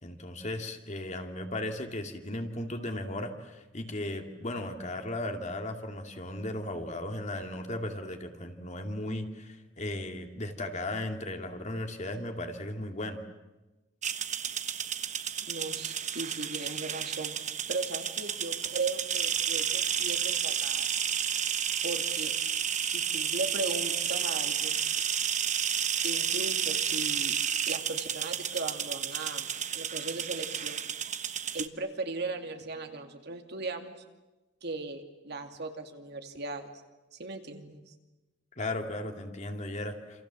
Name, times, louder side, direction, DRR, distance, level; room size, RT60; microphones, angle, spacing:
voice 1, 0.0-13.2 38.6-40.3, left 1 dB, 40° left, 5 dB, 2.4 m, -36 dB
sound 1, 14.0-31.7, right 8 dB, 40° right, 1.2 m, -31 dB
voice 2, 15.5-20.9 21.8-22.3 22.9-24.8 26.0-27.4 27.7-30.9 31.5-34.0 34.6-36.8 37.1-37.9, right 3 dB, 60° right, 5 dB, 2.6 m, -37 dB
28.0 x 27.0 x 7.6 m, 1.1 s
head